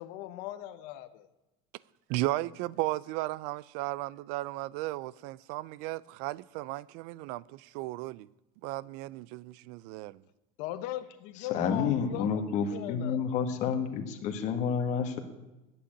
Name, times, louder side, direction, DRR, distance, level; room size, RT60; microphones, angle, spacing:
voice 1, 0.0-1.3 10.6-13.2, left 13 dB, 65° left, 1.0 m, -39 dB
voice 2, 2.1-8.3 8.6-10.2, right 18 dB, 60° right, 0.4 m, -35 dB
voice 3, 11.4-15.2, left 6 dB, 45° left, 1.6 m, -30 dB
11.0 x 8.6 x 8.6 m
cardioid pair, 170°, 17 cm